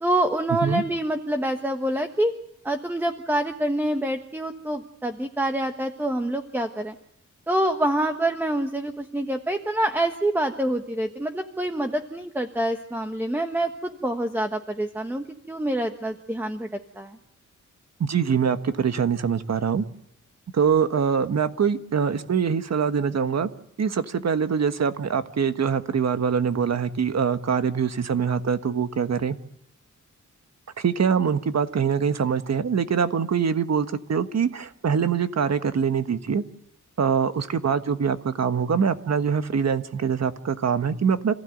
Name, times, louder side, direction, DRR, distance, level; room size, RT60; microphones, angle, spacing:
voice 1, 0.0-2.3 2.6-6.9 7.5-16.7 17.0-17.2, right 1 dB, 5° right, 6 dB, 1.3 m, -26 dB
voice 2, 18.0-19.8 20.5-23.5 23.8-29.4 30.8-36.4 37.0-41.3, right 6 dB, 55° right, 10 dB, 1.4 m, -24 dB
27.5 x 15.5 x 9.2 m, 0.78 s
wide cardioid pair, 130°, 31 cm